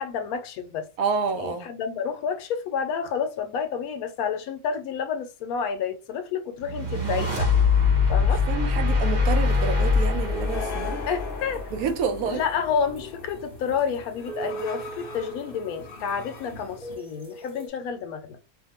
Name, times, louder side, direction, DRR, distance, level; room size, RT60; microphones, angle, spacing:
voice 1, 0.0-0.9 1.4-7.5 8.1-8.4 11.1-11.7 12.3-18.4, left 6 dB, 75° left, 1.0 m, -30 dB
voice 2, 1.0-1.7 8.5-11.0 11.7-12.4, right 6 dB, 75° right, 1.1 m, -28 dB
sound 1, 6.6-17.0, left 4 dB, 55° left, 0.6 m, -41 dB
sound 2, 6.6-12.0, left 4 dB, 45° right, 1.0 m, -23 dB
sound 3, 9.2-17.7, right 2 dB, 5° right, 0.6 m, -41 dB
2.6 x 2.5 x 2.8 m
omnidirectional pair, 1.6 m